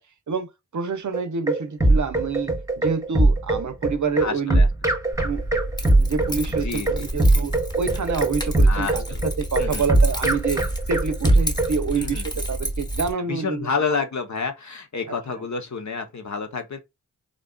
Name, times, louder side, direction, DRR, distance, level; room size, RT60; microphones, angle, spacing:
voice 1, 0.3-4.6 5.2-5.4 6.0-10.6 10.9-13.7, right 5 dB, 60° right, 0.6 m, -27 dB
sound 1, 1.1-11.8, right 2 dB, 10° right, 0.9 m, -20 dB
voice 2, 4.2-4.7 6.5-7.1 8.7-9.2 9.6-9.9 11.9-12.3 13.3-16.8, left 5 dB, 55° left, 0.8 m, -29 dB
Keys jangling, 5.1-13.1, right 1 dB, 10° left, 1.0 m, -30 dB
3.8 x 2.4 x 2.2 m
cardioid pair, 40°, 33 cm